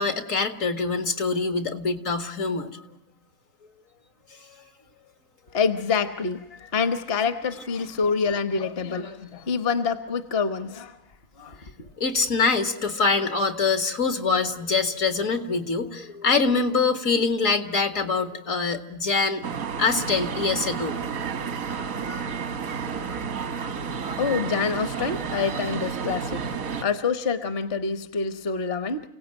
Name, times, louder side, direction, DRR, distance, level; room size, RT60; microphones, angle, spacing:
voice 1, 0.0-2.8 12.0-19.4 19.8-21.2, left 4 dB, 70° left, 8 dB, 2.2 m, -24 dB
voice 2, 5.5-11.0 11.4-11.6 24.2-29.0, left 5 dB, 50° left, 10 dB, 1.2 m, -26 dB
sound 1, 19.4-26.9, right 6 dB, 90° right, 1.6 m, -31 dB
30.0 x 17.5 x 8.9 m, 0.96 s
omnidirectional pair, 1.4 m